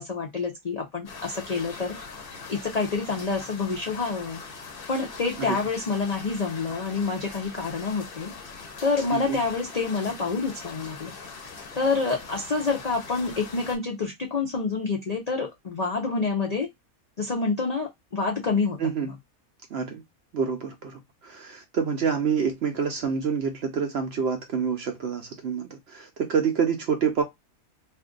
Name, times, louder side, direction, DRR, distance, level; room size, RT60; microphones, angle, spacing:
voice 1, 0.0-1.9 2.5-4.4 4.9-8.3 8.8-11.1 11.7-16.7 17.2-18.8, left 4 dB, 65° left, 0.4 m, -27 dB
sound 1, 1.1-13.8, left 4 dB, 45° left, 0.8 m, -42 dB
voice 2, 18.8-19.1 19.7-20.0 20.3-27.2, right 6 dB, 65° right, 0.7 m, -27 dB
2.6 x 2.5 x 3.6 m
omnidirectional pair, 1.5 m